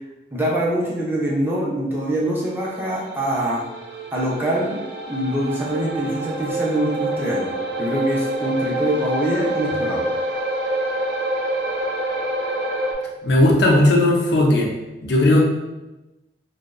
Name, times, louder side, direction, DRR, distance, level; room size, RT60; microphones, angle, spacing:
voice 1, 0.3-3.6 4.1-4.8 5.1-7.5 7.8-10.0, right 1 dB, 10° right, -4 dB, 0.4 m, -24 dB
sound 1, 2.6-12.9, right 1 dB, 75° right, 0.4 m, -27 dB
voice 2, 13.2-14.7 15.0-15.4, left 1 dB, 75° left, -2 dB, 0.5 m, -16 dB
2.6 x 2.0 x 2.4 m, 1.1 s
head